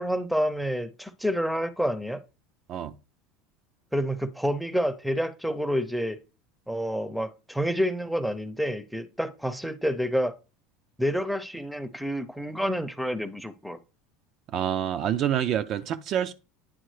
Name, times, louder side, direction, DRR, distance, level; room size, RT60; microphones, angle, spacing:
voice 1, 0.0-2.2 3.9-6.2 6.7-10.3 11.0-13.8, equal, ahead, 0.6 m, -28 dB
voice 2, 14.5-16.3, right 10 dB, 50° right, 0.4 m, -27 dB
9.2 x 3.7 x 3.2 m
hypercardioid pair, 95°, 0 cm